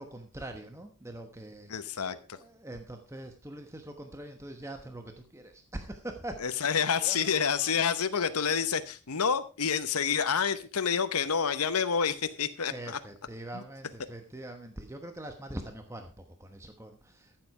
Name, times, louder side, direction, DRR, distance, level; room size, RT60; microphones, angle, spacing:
voice 1, 0.0-2.0 2.3-6.7 7.0-7.3 7.6-7.7 12.7-17.5, right 1 dB, 15° right, 5 dB, 1.1 m, -43 dB
voice 2, 1.7-2.4 6.4-13.0 13.5-13.6, left 6 dB, 85° left, 11 dB, 0.9 m, -28 dB
13.5 x 7.7 x 4.8 m, 0.34 s
head